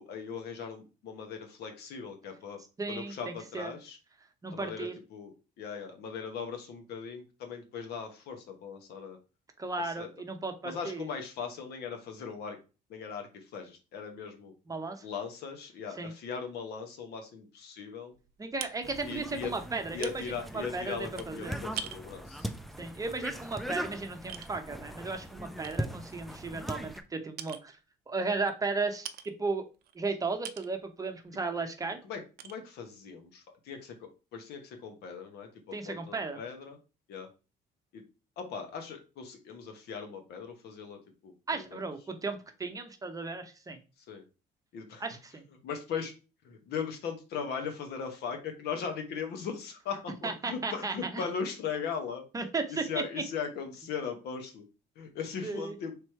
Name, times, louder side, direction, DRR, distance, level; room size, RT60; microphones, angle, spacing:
voice 1, 0.0-2.6 2.9-4.0 4.5-9.2 9.8-10.1 10.6-12.6 12.9-14.5 15.0-18.1 19.0-19.5 19.9-22.5 32.0-36.8 37.1-37.3 37.9-38.0 38.4-41.8 44.1-44.2 44.7-45.0 45.6-46.1 46.4-52.2 52.7-54.6 55.0-55.9, left 6 dB, 75° left, 5 dB, 1.0 m, -39 dB
voice 2, 2.8-3.7 4.4-5.0 9.6-11.1 14.7-15.0 15.9-16.1 18.4-21.6 22.8-27.7 28.1-29.7 29.9-32.0 35.7-36.4 41.5-43.8 45.0-45.4 50.2-51.2 52.3-53.0 55.4-55.8, right 3 dB, 20° right, 5 dB, 0.7 m, -35 dB
sound 1, 18.1-24.0 24.3-24.5 25.0-25.1 25.6-27.1 27.4-27.8 28.5-28.6 29.0-29.3 29.7-30.8 31.2-31.5 31.7-31.8 32.4-32.5, right 9 dB, 70° right, 0.5 m, -45 dB
sound 2, 18.8-27.0, equal, ahead, 0.4 m, -40 dB
3.4 x 3.0 x 4.4 m, 0.32 s
cardioid pair, 110°, 17 cm